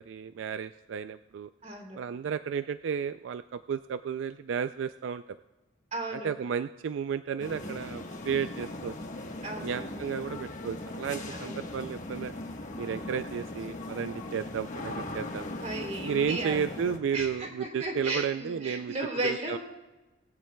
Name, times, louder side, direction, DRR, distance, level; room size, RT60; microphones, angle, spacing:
voice 1, 0.0-1.5 2.0-5.4 6.1-8.9 9.6-12.3 12.8-15.5 16.0-18.9 19.2-19.6, right 7 dB, 80° right, 12 dB, 0.3 m, -33 dB
voice 2, 1.6-2.0 5.9-6.3 9.4-10.0 11.3-11.7 15.6-16.7 17.1-19.6, right 2 dB, 40° right, 1 dB, 3.0 m, -35 dB
sound 1, 7.4-17.0, left 2 dB, 45° left, 1.2 m, -39 dB
20.5 x 15.0 x 2.3 m, 1.1 s
head